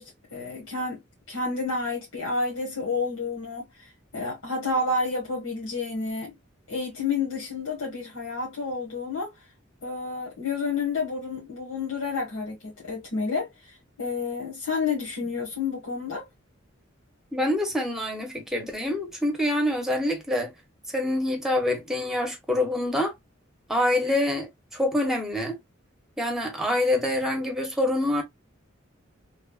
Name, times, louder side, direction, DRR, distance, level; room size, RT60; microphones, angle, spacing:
voice 1, 0.0-6.3 6.7-9.3 9.8-16.3, left 3 dB, 90° left, 1.3 m, -30 dB
voice 2, 17.3-20.5 20.9-23.1 23.7-25.6 26.2-28.2, left 1 dB, ahead, 0.8 m, -26 dB
3.1 x 2.3 x 2.3 m
head